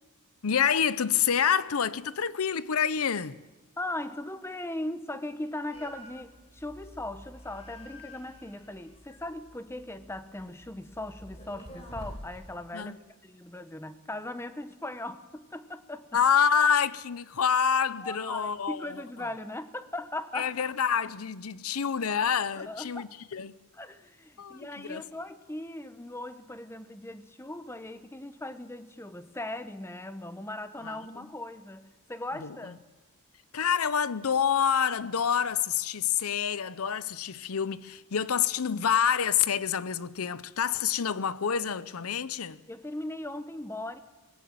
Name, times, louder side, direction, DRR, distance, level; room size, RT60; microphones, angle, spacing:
voice 1, 0.4-3.4 12.7-13.0 16.1-19.0 20.3-23.5 24.4-25.0 30.8-31.0 32.4-32.6 33.5-42.6, left 7 dB, 90° left, 0.7 m, -27 dB
voice 2, 3.8-16.2 18.0-20.5 22.6-23.1 23.7-32.8 42.7-44.0, left 1 dB, 10° left, 0.9 m, -39 dB
sound 1, 5.7-12.5, equal, 30° left, 3.8 m, -48 dB
20.0 x 17.0 x 7.6 m
head